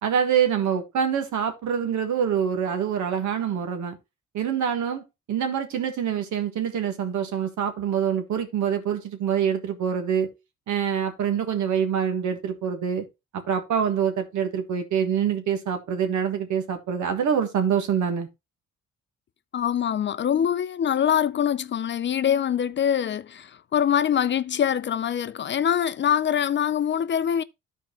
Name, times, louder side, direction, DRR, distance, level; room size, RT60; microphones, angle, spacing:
voice 1, 0.0-4.0 4.3-10.3 10.7-13.0 13.5-18.3, right 8 dB, 75° right, 1.6 m, -25 dB
voice 2, 19.5-27.4, left 9 dB, 40° left, 0.4 m, -24 dB
12.5 x 4.6 x 3.1 m
cardioid pair, 90°, 30 cm